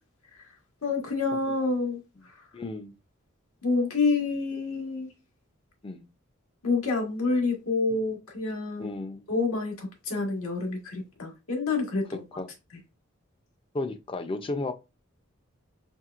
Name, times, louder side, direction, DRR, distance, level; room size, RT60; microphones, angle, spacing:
voice 1, 0.8-2.0 3.6-5.1 6.6-9.0 9.3-12.2, left 3 dB, 90° left, 1.5 m, -28 dB
voice 2, 2.5-2.9 5.8-6.1 8.8-9.3 12.4-12.5 13.7-14.7, left 2 dB, 25° left, 0.4 m, -33 dB
4.4 x 3.3 x 2.4 m
head